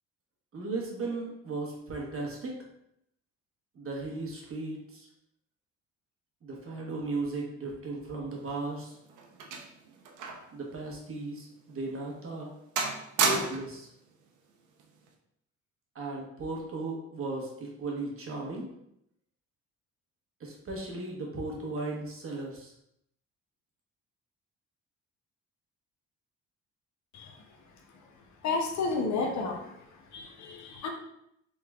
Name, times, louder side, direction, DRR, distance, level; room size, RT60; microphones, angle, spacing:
voice 1, 0.5-2.6 3.7-5.1 6.4-8.9 10.5-12.5 13.2-13.9 15.9-18.7 20.4-22.7, right 3 dB, 45° right, -1 dB, 1.1 m, -36 dB
sound 1, 8.4-10.6 10.9-11.0 11.7-11.8 12.2-12.5 12.8-13.8 14.8-15.1, right 4 dB, 80° right, 0.6 m, -32 dB
voice 2, 28.4-29.8 30.1-30.9, left 4 dB, 65° left, 2 dB, 0.8 m, -31 dB
3.7 x 3.4 x 2.3 m, 0.77 s
cardioid pair, 90°, 30 cm